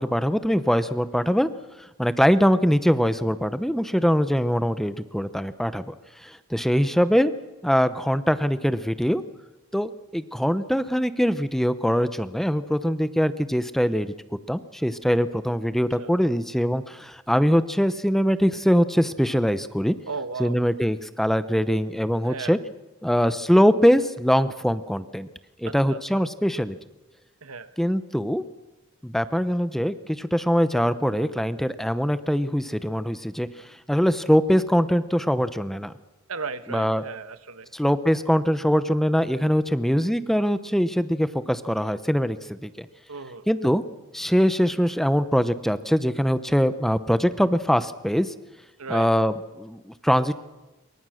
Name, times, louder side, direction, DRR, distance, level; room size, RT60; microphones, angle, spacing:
voice 1, 0.0-1.5 1.8-5.9 6.2-7.3 7.6-9.2 9.7-14.1 14.5-19.9 20.4-22.6 23.0-25.3 25.6-26.8 27.8-28.4 29.0-35.9 36.7-37.0 37.7-42.9 43.5-43.8 44.1-48.3 48.9-50.3, equal, ahead, 12 dB, 0.7 m, -22 dB
voice 2, 20.1-20.6 22.2-22.6 25.6-26.2 27.4-27.8 36.3-37.7 43.1-43.5 48.8-49.1, right 4 dB, 80° right, 11 dB, 1.3 m, -35 dB
26.5 x 23.5 x 6.4 m, 1.1 s
head